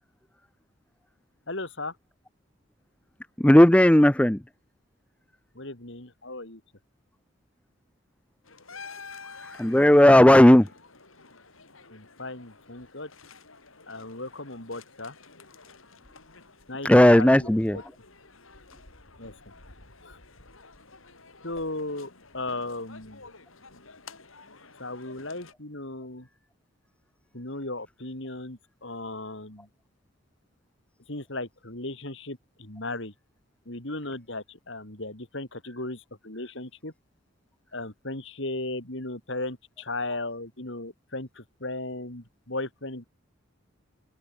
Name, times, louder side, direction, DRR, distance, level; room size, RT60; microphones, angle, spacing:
voice 1, 1.5-1.9 5.6-6.6 11.9-13.1 13.9-15.2 16.7-16.9 17.2-17.8 19.2-19.3 20.0-20.2 21.4-23.2 24.8-26.3 27.3-29.7 31.1-33.1 33.7-36.9 37.7-43.0, left 2 dB, 65° left, 3.6 m, -36 dB
voice 2, 3.4-4.4 9.4-10.7 16.8-17.8, left 1 dB, 5° left, 0.5 m, -15 dB
sound 1, 8.4-25.5, left 4 dB, 85° left, 5.6 m, -50 dB
head